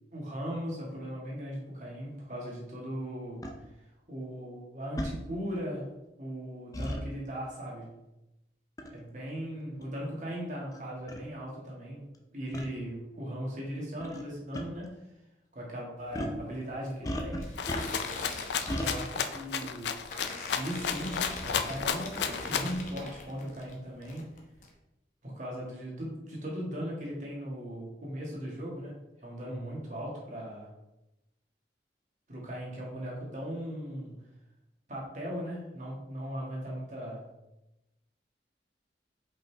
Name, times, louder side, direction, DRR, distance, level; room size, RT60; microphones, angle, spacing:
voice 1, 0.1-3.5 4.1-5.9 6.2-8.0 8.9-12.1 12.3-15.1 15.5-17.5 18.8-20.0 20.5-24.2 25.2-30.7 32.3-34.3 34.9-37.2, equal, 45° right, -3 dB, 1.8 m, -38 dB
sound 1, 3.4-3.5 5.0-5.1 6.7-7.0 8.8-9.0 9.8-9.9 10.7-10.8 11.1-11.2 12.5-12.7 14.0-14.2 14.5-14.6 16.1-16.4 17.0-18.2 18.7-18.9, equal, 20° left, 0.6 m, -34 dB
sound 2, 16.0-23.7 24.0-24.7, left 2 dB, 45° left, 1.0 m, -43 dB
Rattle (instrument), 17.6-22.8, left 7 dB, 80° left, 0.4 m, -33 dB
5.3 x 5.2 x 3.4 m, 0.94 s
head